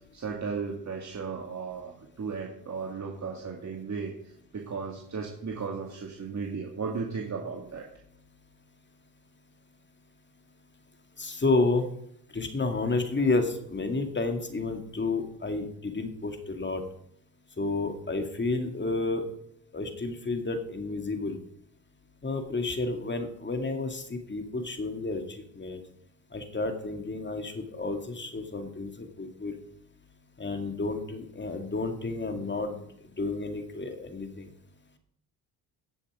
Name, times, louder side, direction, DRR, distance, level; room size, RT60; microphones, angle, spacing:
voice 1, 0.1-4.2 4.5-7.8, right 5 dB, 40° right, -1 dB, 2.2 m, -35 dB
voice 2, 11.2-11.9 12.3-16.8 17.6-19.2 19.7-21.4 22.2-25.8 26.3-29.5 30.4-32.8 33.2-34.5, left 3 dB, 25° left, 5 dB, 2.3 m, -30 dB
17.5 x 7.0 x 4.9 m, 0.72 s
supercardioid pair, 70°, 42 cm